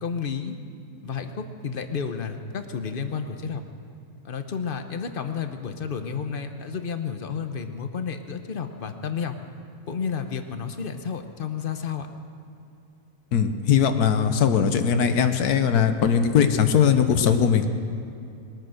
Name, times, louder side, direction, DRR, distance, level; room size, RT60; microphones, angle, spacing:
voice 1, 0.0-0.6 1.0-3.6 4.2-9.3 9.9-12.1, left 6 dB, 45° left, 8 dB, 0.9 m, -31 dB
voice 2, 13.3-17.6, left 7 dB, 75° left, 8 dB, 1.4 m, -20 dB
21.0 x 9.0 x 6.5 m, 2.7 s
omnidirectional pair, 1.7 m